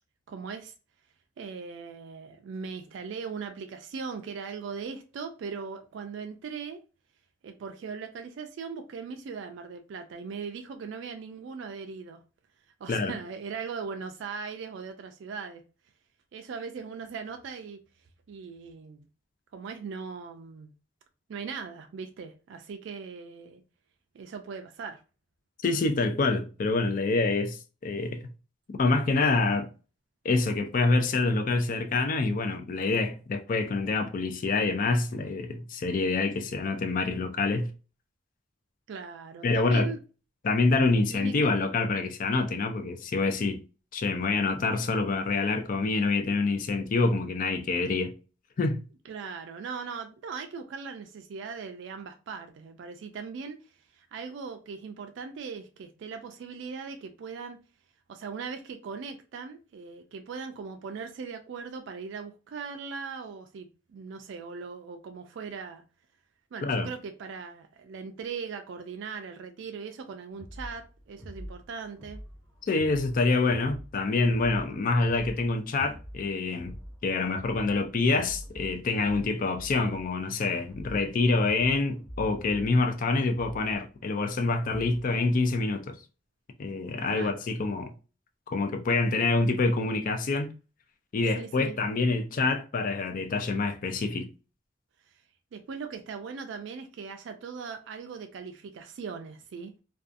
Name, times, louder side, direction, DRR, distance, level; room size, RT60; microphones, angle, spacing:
voice 1, 0.3-0.7 1.4-6.8 7.4-12.2 12.8-15.6 16.3-17.8 18.3-19.1 19.5-20.7 21.3-23.6 24.1-25.0 38.9-40.0 41.1-41.5 49.1-53.6 53.9-57.6 58.1-65.8 66.5-72.2 87.1-87.4 91.4-91.8 95.5-99.8, right 5 dB, 65° right, 0.3 m, -39 dB
voice 2, 25.6-27.6 27.8-28.2 28.8-29.7 30.2-37.7 39.4-39.9 40.4-43.6 43.9-48.1 48.6-48.8 66.6-66.9 72.6-76.7 77.0-86.0 86.6-87.9 88.5-90.5 91.1-94.3, left 3 dB, 45° left, 0.4 m, -26 dB
sound 1, 70.3-85.1, equal, 25° left, 1.1 m, -46 dB
2.5 x 2.3 x 2.4 m
head